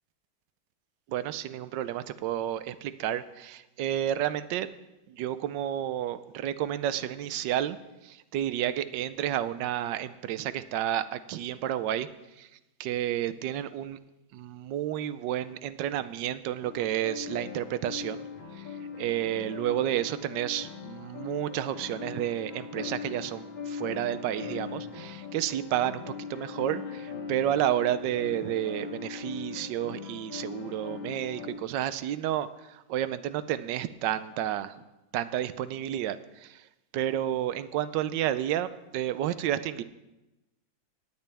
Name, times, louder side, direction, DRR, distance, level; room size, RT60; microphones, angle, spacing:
voice 1, 1.1-4.7 5.1-7.8 8.0-12.1 12.4-12.5 12.8-14.0 14.3-18.2 18.6-18.7 19.0-34.7 35.1-36.6 36.9-39.8, right 11 dB, 75° right, 14 dB, 1.2 m, -31 dB
sound 1, 16.6-31.6, left 6 dB, 80° left, 1.9 m, -40 dB
17.5 x 9.8 x 3.4 m, 0.99 s
omnidirectional pair, 2.1 m